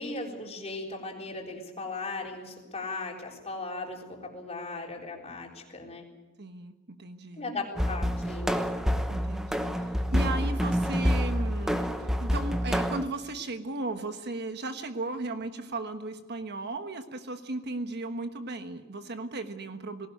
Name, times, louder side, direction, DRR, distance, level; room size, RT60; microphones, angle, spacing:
voice 1, 0.0-6.1 7.4-8.6, left 3 dB, 30° left, 0 dB, 3.9 m, -37 dB
voice 2, 6.4-7.5 9.1-9.7 10.1-20.1, right 2 dB, 50° right, 8 dB, 1.3 m, -36 dB
sound 1, 7.8-13.0, equal, ahead, 1.1 m, -27 dB
19.5 x 17.5 x 9.1 m, 1.2 s
head